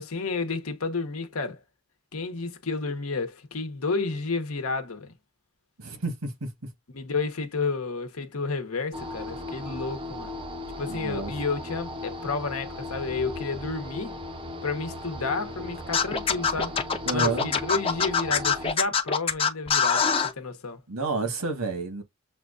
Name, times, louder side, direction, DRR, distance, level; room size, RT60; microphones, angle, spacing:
voice 1, 0.0-1.6 2.1-5.1 6.9-10.3 10.8-14.2 14.6-16.8 17.1-20.8, left 4 dB, 80° left, 1.0 m, -31 dB
voice 2, 5.8-6.5 10.9-11.3 17.0-17.5 20.9-22.0, right 3 dB, 85° right, 1.4 m, -30 dB
sound 1, 8.9-18.7, left 2 dB, 25° right, 0.5 m, -37 dB
Scratching (performance technique), 15.9-20.3, left 6 dB, 25° left, 0.6 m, -23 dB
7.0 x 2.4 x 2.5 m
head